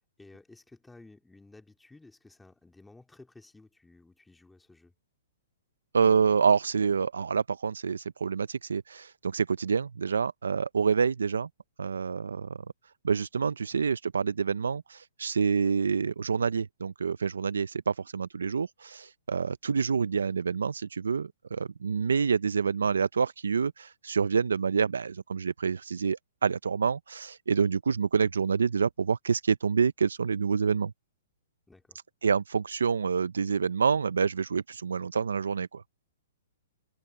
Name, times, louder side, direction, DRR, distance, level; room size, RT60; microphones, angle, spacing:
voice 1, 0.2-4.9 31.7-32.0, left 2 dB, 5° left, 2.4 m, -54 dB
voice 2, 5.9-11.5 11.8-12.6 13.0-30.9 32.2-35.8, right 6 dB, 90° right, 0.5 m, -27 dB
hypercardioid pair, 135°, 0 cm